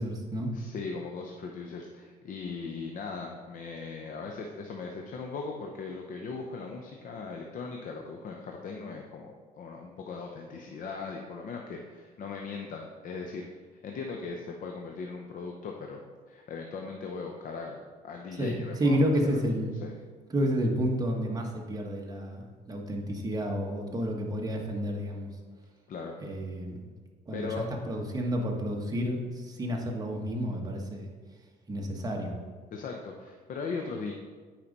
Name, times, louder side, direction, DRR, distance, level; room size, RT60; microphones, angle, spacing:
voice 1, 0.0-0.5 18.4-19.7 20.3-25.3 26.2-26.8 27.3-27.5 27.9-31.1 31.7-32.3, equal, 20° right, 0 dB, 1.3 m, -30 dB
voice 2, 0.5-13.5 13.8-16.0 16.3-19.0 19.2-19.4 19.8-20.0 25.9-26.1 27.3-27.7 32.7-34.1, left 4 dB, 55° left, 2 dB, 0.7 m, -38 dB
8.7 x 5.0 x 4.1 m, 1.5 s
cardioid pair, 110°, 17 cm